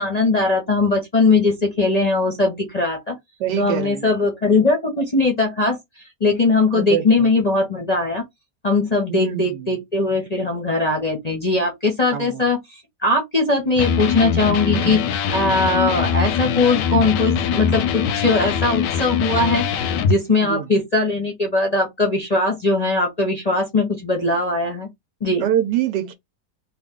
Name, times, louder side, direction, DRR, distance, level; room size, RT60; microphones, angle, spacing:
voice 1, 0.0-3.2 3.6-5.8 6.2-8.2 8.6-15.0 15.3-24.9 25.2-25.4, left 3 dB, 35° left, 0.6 m, -20 dB
voice 2, 3.4-4.1 6.7-7.3 9.1-9.7 12.1-12.4 14.7-15.0 20.3-20.7 25.4-26.1, right 10 dB, 85° right, 1.3 m, -25 dB
Electric guitar, 13.8-20.2, left 7 dB, 90° left, 1.2 m, -22 dB
3.0 x 2.5 x 3.6 m
omnidirectional pair, 1.8 m